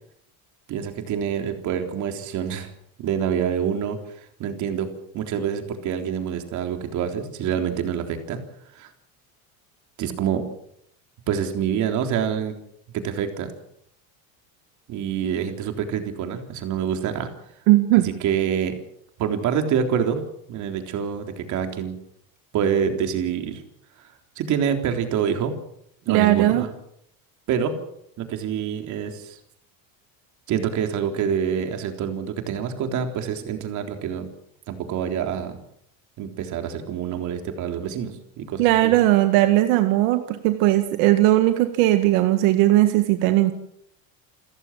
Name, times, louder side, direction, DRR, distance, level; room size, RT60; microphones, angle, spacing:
voice 1, 0.7-2.7 3.0-4.0 4.4-4.9 5.1-8.4 8.8-8.9 10.0-10.4 11.3-12.6 12.9-13.5 14.9-17.3 18.0-18.8 19.2-20.2 20.5-21.9 22.5-23.6 24.4-25.5 26.1-26.7 27.5-27.7 28.2-29.4 30.5-34.3 34.7-35.6 36.2-38.9, right 8 dB, 45° right, 6 dB, 3.7 m, -26 dB
voice 2, 17.7-18.1 26.1-26.7 38.6-43.5, right 15 dB, 75° right, 8 dB, 1.9 m, -18 dB
29.0 x 15.0 x 7.5 m, 0.73 s
cardioid pair, 165°, 40 cm